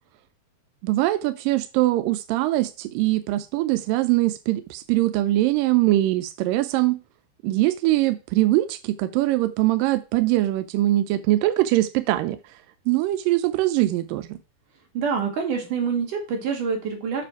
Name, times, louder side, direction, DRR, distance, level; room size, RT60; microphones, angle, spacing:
voice 1, 0.8-7.0 7.4-12.4 12.9-14.4, right 16 dB, 85° right, 12 dB, 2.0 m, -22 dB
voice 2, 14.9-17.3, right 6 dB, 55° right, 2 dB, 3.7 m, -26 dB
7.7 x 6.4 x 4.6 m, 0.30 s
omnidirectional pair, 4.5 m